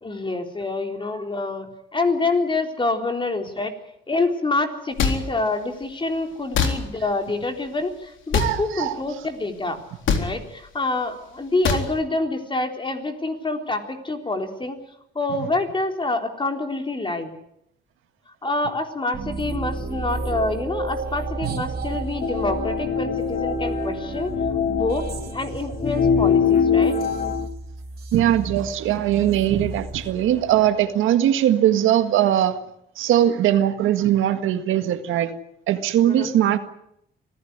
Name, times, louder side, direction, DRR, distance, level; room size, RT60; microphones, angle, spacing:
voice 1, 0.0-3.7 4.1-9.8 10.2-14.8 15.2-17.3 18.4-24.3 24.7-25.1 25.3-26.9 36.0-36.4, left 2 dB, 25° left, 5 dB, 3.9 m, -26 dB
sound 1, 5.0-5.2 6.5-6.7 8.3-8.5 10.1-10.2 11.6-11.9, left 6 dB, 75° left, 3.9 m, -20 dB
voice 2, 8.4-9.0 21.4-21.6 28.1-32.6 33.0-35.3 35.7-36.6, right 11 dB, 85° right, 9 dB, 1.8 m, -20 dB
sound 2, 19.1-30.7, right 3 dB, 50° right, 3.2 m, -33 dB
sound 3, 22.2-27.5, left 6 dB, 45° left, 1.6 m, -23 dB
24.5 x 16.0 x 9.7 m, 0.76 s
cardioid pair, 90°, 20 cm